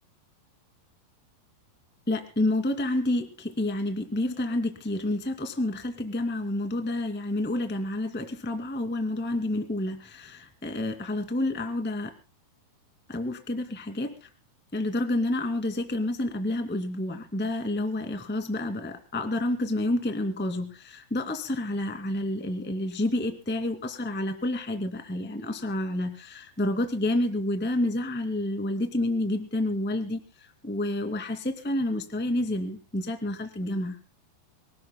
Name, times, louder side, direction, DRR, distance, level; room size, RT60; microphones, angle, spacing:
voice 1, 2.1-12.1 13.1-14.3 14.7-30.2 30.6-33.9, left 1 dB, 5° left, 6 dB, 0.7 m, -29 dB
26.5 x 19.0 x 2.2 m, 0.34 s
omnidirectional pair, 5.1 m